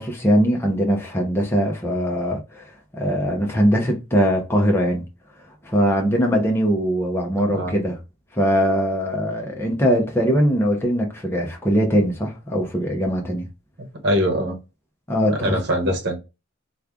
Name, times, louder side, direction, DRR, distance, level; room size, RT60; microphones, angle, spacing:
voice 1, 0.0-5.0 5.6-8.0 8.3-13.5 15.1-15.6, equal, 10° left, 0.7 m, -21 dB
voice 2, 14.0-14.5 15.3-16.2, equal, 55° right, 1.1 m, -22 dB
3.1 x 2.4 x 3.6 m
head